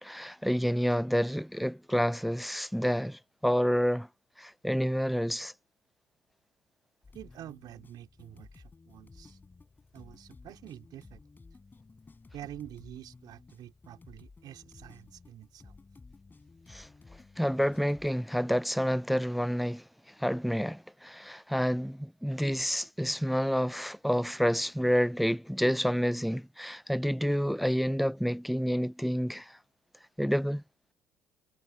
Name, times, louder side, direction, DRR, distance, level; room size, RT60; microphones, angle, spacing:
voice 1, 0.0-4.1 4.4-5.5 16.7-16.9 17.4-19.8 20.2-29.6 30.2-30.6, equal, ahead, 0.4 m, -29 dB
sound 1, 7.0-18.1, left 3 dB, 25° left, 5.6 m, -54 dB
voice 2, 7.1-9.4 9.9-11.2 12.3-15.7, right 12 dB, 60° right, 3.8 m, -47 dB
hypercardioid pair, 60°, 8 cm